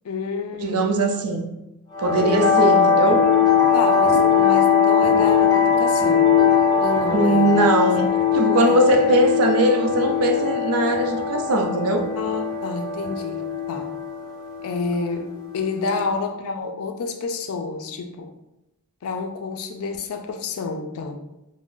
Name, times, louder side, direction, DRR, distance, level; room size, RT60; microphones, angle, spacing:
voice 1, 0.0-0.8 3.7-6.3 6.8-7.5 8.7-8.9 12.2-13.9 14.6-18.3 19.0-21.2, left 4 dB, 70° left, 5 dB, 0.4 m, -29 dB
voice 2, 0.6-1.5 2.0-3.3 7.1-12.1, right 1 dB, 85° right, 4 dB, 0.5 m, -20 dB
sound 1, 1.9-16.0, left 7 dB, 15° left, 0.7 m, -20 dB
2.4 x 2.0 x 3.6 m, 0.92 s
head